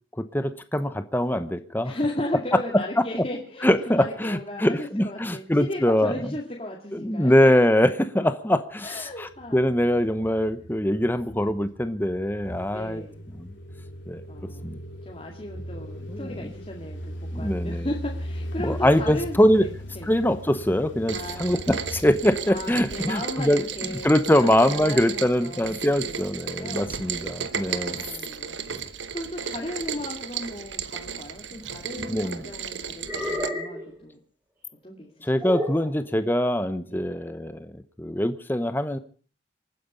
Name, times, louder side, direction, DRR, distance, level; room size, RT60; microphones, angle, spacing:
voice 1, 0.2-1.9 2.7-2.8 3.6-6.2 6.9-13.0 13.4-13.5 14.1-14.2 14.6-14.8 16.1-16.5 17.3-17.9 18.6-19.7 20.1-23.6 23.9-28.0 28.7-28.8 32.1-32.5 35.2-39.0, equal, 10° left, 11 dB, 0.9 m, -23 dB
voice 2, 1.8-7.3 8.8-9.8 12.7-13.2 14.3-20.1 21.1-21.7 22.5-27.0 27.6-34.2 34.8-35.3 35.6-35.9 36.9-37.1, left 1 dB, 30° left, -1 dB, 2.3 m, -36 dB
sound 1, 8.9-23.2, equal, 80° left, 3.1 m, -38 dB
Rain, 21.1-33.5, right 7 dB, 80° right, 1.1 m, -34 dB
sound 2, 31.5-32.3 33.0-33.9 35.4-35.9, left 1 dB, 15° right, 4.4 m, -31 dB
27.5 x 9.5 x 5.1 m, 0.42 s
head